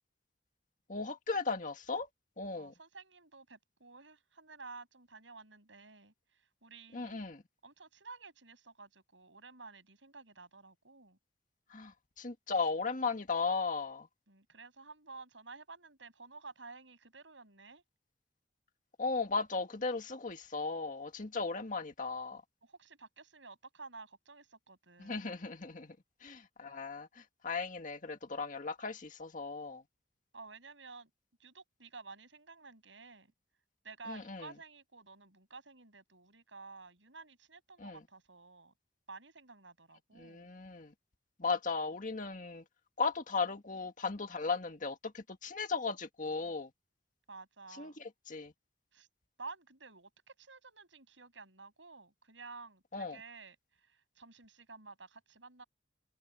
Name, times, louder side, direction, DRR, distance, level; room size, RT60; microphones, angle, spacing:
voice 1, 0.9-2.1 2.4-2.7 6.9-7.4 11.7-14.1 19.0-22.4 25.0-26.0 26.2-29.8 34.1-34.5 37.8-38.0 40.2-40.9 41.4-42.6 43.0-46.7 47.8-48.5 52.9-53.2, left 4 dB, 45° left, 1.9 m, -36 dB
voice 2, 2.5-6.1 6.6-7.2 7.6-11.2 14.3-17.8 22.6-25.2 30.3-31.1 31.4-33.3 33.8-38.7 39.1-40.5 47.3-48.0 48.9-49.1 49.4-53.6 53.9-55.6, right 4 dB, 80° right, 7.6 m, -52 dB
open air
head